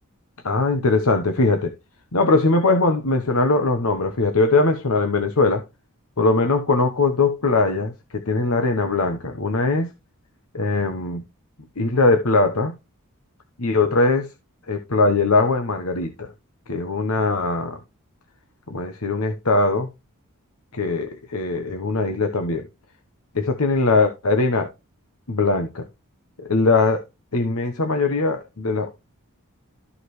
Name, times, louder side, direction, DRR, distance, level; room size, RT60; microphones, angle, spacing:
voice 1, 0.4-1.7 2.1-5.6 6.2-9.9 10.5-11.2 11.8-12.7 13.6-14.3 14.7-16.3 16.7-17.8 18.7-19.9 20.7-22.6 23.3-24.7 25.3-25.8 26.4-27.0 27.3-28.9, left 3 dB, 75° left, 1.1 m, -21 dB
13.5 x 5.0 x 3.1 m
head